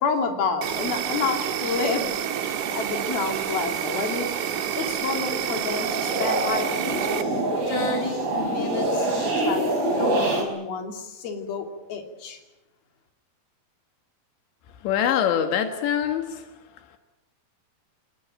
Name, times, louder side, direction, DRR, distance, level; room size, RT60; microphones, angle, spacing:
voice 1, 0.0-2.1 2.7-4.3 4.8-6.7 7.7-12.4, left 5 dB, 60° left, 5 dB, 4.5 m, -29 dB
Insect, 0.6-7.2, right 9 dB, 55° right, 2.5 m, -28 dB
sound 1, 5.2-10.4, right 1 dB, 30° right, 6.4 m, -26 dB
voice 2, 14.8-16.4, left 9 dB, 85° left, 7 dB, 3.7 m, -24 dB
26.0 x 20.5 x 9.1 m, 0.99 s
omnidirectional pair, 5.0 m